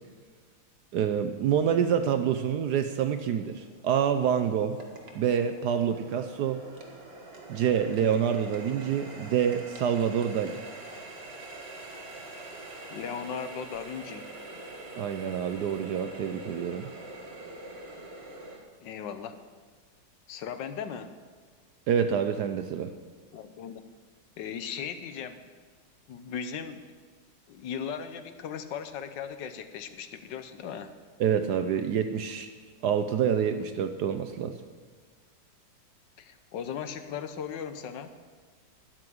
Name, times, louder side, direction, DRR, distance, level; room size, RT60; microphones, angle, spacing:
voice 1, 0.9-4.8 5.1-6.6 7.5-10.6 15.0-16.9 21.9-22.9 31.2-32.5 32.8-34.6, right 8 dB, 70° right, 8 dB, 1.0 m, -27 dB
Water tap faucet, 2.8-18.6, right 2 dB, 35° right, 1.5 m, -45 dB
voice 2, 12.9-14.3 18.8-19.4 20.3-21.1 23.3-23.9 24.4-25.5 26.1-26.9 27.5-30.9 36.2-38.2, left 7 dB, 70° left, 10 dB, 1.3 m, -37 dB
12.5 x 6.1 x 9.4 m, 1.5 s
omnidirectional pair, 2.2 m